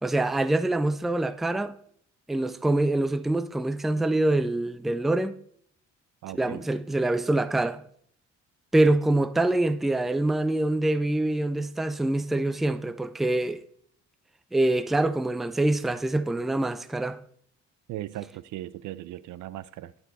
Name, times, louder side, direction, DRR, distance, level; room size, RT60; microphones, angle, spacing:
voice 1, 0.0-1.8 2.3-5.4 6.3-7.8 8.7-13.6 14.5-17.2, right 2 dB, ahead, 0.4 m, -25 dB
voice 2, 6.2-6.7 17.9-19.9, right 14 dB, 75° right, 0.5 m, -38 dB
11.5 x 4.5 x 4.0 m
cardioid pair, 90°, 30 cm